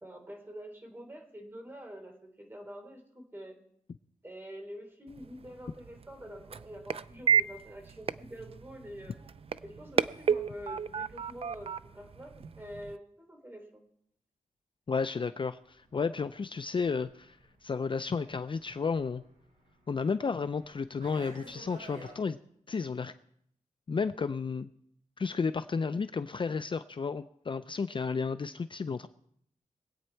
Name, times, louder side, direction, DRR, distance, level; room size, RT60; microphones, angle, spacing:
voice 1, 0.0-3.6 4.2-9.1 9.6-13.9, equal, 15° right, 4 dB, 3.2 m, -46 dB
sound 1, 5.1-13.0, right 7 dB, 45° right, 0.4 m, -33 dB
voice 2, 14.9-19.2 19.9-22.4 22.7-23.1 23.9-24.7 25.2-29.1, left 5 dB, 40° left, 11 dB, 0.4 m, -32 dB
Fixed-wing aircraft airplane, 15.7-22.2, right 1 dB, 85° right, 7.7 m, -53 dB
22.5 x 8.7 x 4.5 m, 0.70 s
wide cardioid pair, 105°, 13 cm